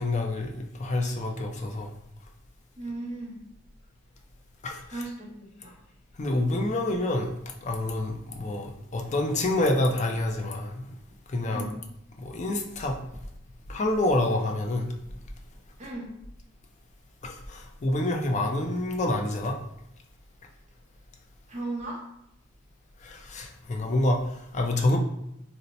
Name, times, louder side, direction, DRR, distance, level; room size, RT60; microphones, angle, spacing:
voice 1, 0.0-1.9 4.6-5.0 6.2-7.3 7.6-10.9 11.3-11.7 12.2-13.0 13.7-14.9 17.2-19.6 23.0-25.0, left 2 dB, 35° left, 2 dB, 0.4 m, -27 dB
voice 2, 2.8-3.4 4.9-5.7 11.4-11.8 15.8-16.1 21.5-22.0, right 2 dB, 35° right, -3 dB, 0.8 m, -36 dB
2.7 x 2.1 x 3.9 m, 0.81 s
head